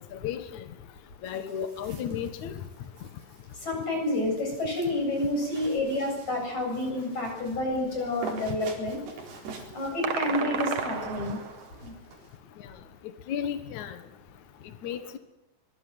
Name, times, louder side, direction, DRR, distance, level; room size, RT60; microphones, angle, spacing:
voice 1, 0.1-0.6 1.2-2.5 13.3-14.0 14.8-15.2, left 8 dB, 75° left, 9 dB, 1.7 m, -33 dB
sound 1, 1.2-12.4, right 4 dB, 60° right, 6.2 m, -47 dB
voice 2, 3.5-9.0 9.7-11.4 11.8-11.9, left 1 dB, 35° left, 2 dB, 9.1 m, -29 dB
sound 2, 10.0-11.7, right 7 dB, 85° right, 1.3 m, -32 dB
25.0 x 22.0 x 7.9 m, 0.94 s
omnidirectional pair, 5.6 m